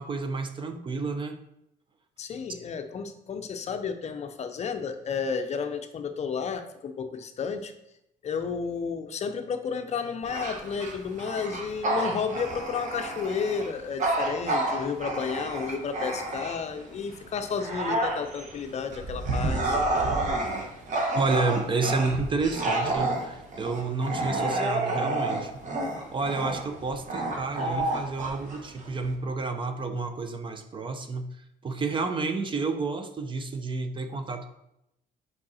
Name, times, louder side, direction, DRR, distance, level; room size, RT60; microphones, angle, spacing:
voice 1, 0.0-1.4 21.1-25.5 26.1-31.4 31.6-34.5, right 3 dB, 30° right, 7 dB, 0.6 m, -30 dB
voice 2, 2.2-7.7 8.2-19.8, left 6 dB, 40° left, 7 dB, 0.6 m, -32 dB
Bark / Growling, 10.2-16.8 17.3-29.1, right 2 dB, 45° right, 1.3 m, -29 dB
5.2 x 4.8 x 4.2 m, 0.83 s
cardioid pair, 110°, 17 cm